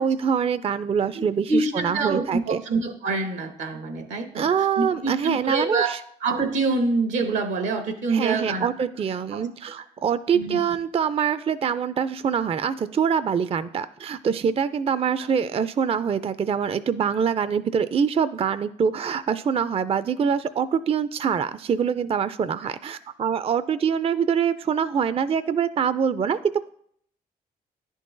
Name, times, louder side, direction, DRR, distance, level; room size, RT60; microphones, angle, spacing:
voice 1, 0.0-2.6 4.4-6.0 8.1-26.4, right 7 dB, 30° right, 13 dB, 0.4 m, -24 dB
voice 2, 1.1-4.5 4.8-5.9 6.2-8.7 9.3-9.4 10.3-10.6 15.2-15.3, right 3 dB, 80° right, 8 dB, 0.9 m, -26 dB
10.5 x 3.8 x 2.5 m, 0.63 s
hypercardioid pair, 40°, 19 cm